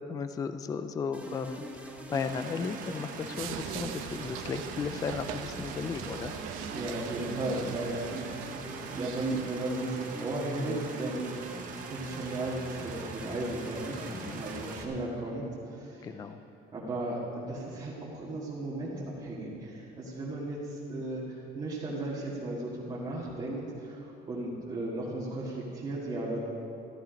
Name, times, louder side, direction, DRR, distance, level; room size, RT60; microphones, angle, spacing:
voice 1, 0.1-6.3 14.0-14.4 16.0-16.4, left 5 dB, 15° left, 10 dB, 0.4 m, -35 dB
sound 1, 1.1-14.8, right 1 dB, 5° right, 1.0 m, -44 dB
sound 2, 2.1-14.9, right 6 dB, 40° right, 1.1 m, -44 dB
sound 3, 3.4-9.5, right 9 dB, 80° right, 0.9 m, -42 dB
voice 2, 6.7-8.4 8.9-11.4 11.9-16.2 16.7-26.4, right 2 dB, 20° right, -7 dB, 1.8 m, -35 dB
14.5 x 13.5 x 5.1 m, 2.9 s
cardioid pair, 180°, 21 cm